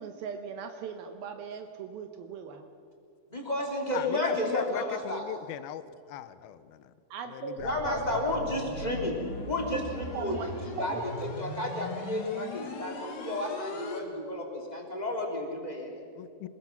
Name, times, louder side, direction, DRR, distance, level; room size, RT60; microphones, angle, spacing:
voice 1, 0.0-2.7 7.1-7.6 7.8-8.5 10.1-10.5 10.8-11.0, right 6 dB, 75° right, 5 dB, 2.8 m, -39 dB
voice 2, 3.3-5.2 7.6-9.2 9.4-11.0 11.4-16.0, left 1 dB, 10° left, 0 dB, 2.7 m, -32 dB
voice 3, 3.9-6.9 7.3-8.6 16.2-16.5, left 11 dB, 75° left, 13 dB, 2.6 m, -40 dB
sound 1, 7.6-14.0, left 3 dB, 55° left, 3.4 m, -39 dB
26.5 x 21.0 x 6.0 m, 2.3 s
omnidirectional pair, 4.5 m